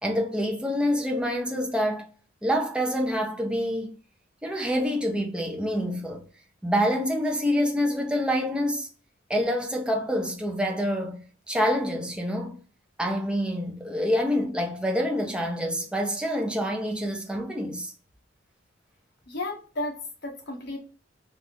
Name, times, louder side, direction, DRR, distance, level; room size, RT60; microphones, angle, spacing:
voice 1, 0.0-2.1 2.4-3.9 4.4-6.2 6.6-8.9 9.3-11.2 11.5-12.6 13.0-17.9, equal, 5° right, 0.5 m, -26 dB
voice 2, 19.3-20.8, left 2 dB, 60° left, 1.0 m, -33 dB
3.5 x 2.4 x 2.6 m
head